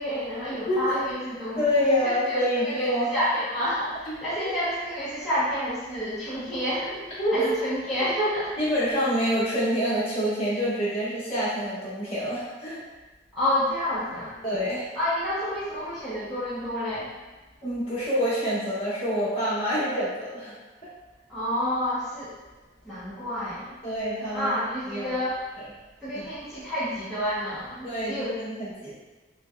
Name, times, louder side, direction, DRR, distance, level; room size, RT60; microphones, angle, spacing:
voice 1, 0.0-8.6 13.3-14.4 14.9-17.1 21.3-22.4 22.8-23.8 24.3-25.4 26.0-28.4, equal, ahead, -14 dB, 0.8 m, -29 dB
voice 2, 1.5-3.1 4.1-4.2 7.2-7.5 8.6-12.8 14.4-14.9 17.6-20.5 23.8-24.5 24.9-25.1 26.1-26.3 27.8-28.9, equal, 30° left, -10 dB, 1.3 m, -26 dB
5.4 x 2.3 x 2.3 m, 1.2 s
head